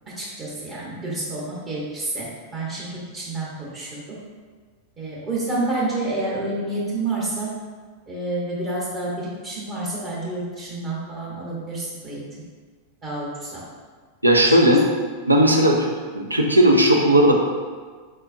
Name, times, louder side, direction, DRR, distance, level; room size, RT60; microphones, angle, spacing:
voice 1, 0.2-4.2 5.0-7.5 8.1-12.2 13.0-13.6 14.4-14.7, right 2 dB, 30° right, -6 dB, 1.0 m, -29 dB
voice 2, 14.2-14.8 15.3-15.8 16.1-17.3, equal, 85° right, 1 dB, 0.5 m, -16 dB
4.7 x 4.3 x 2.5 m, 1.5 s
figure-of-eight pair, 90°, 0 cm